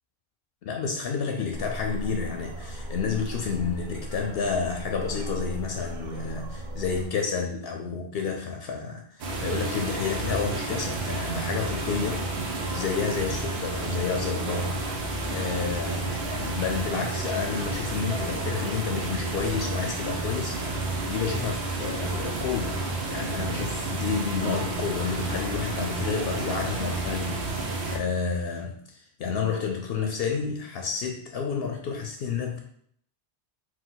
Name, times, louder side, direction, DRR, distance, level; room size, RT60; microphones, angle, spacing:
voice 1, 0.7-14.8 15.3-20.6 21.0-32.6, left 5 dB, 75° left, 3 dB, 0.8 m, -30 dB
sound 1, 1.5-7.1, equal, 55° right, 0.7 m, -37 dB
sound 2, 9.2-28.0, right 2 dB, 80° right, 1.0 m, -31 dB
4.5 x 2.3 x 3.9 m, 0.65 s
omnidirectional pair, 1.0 m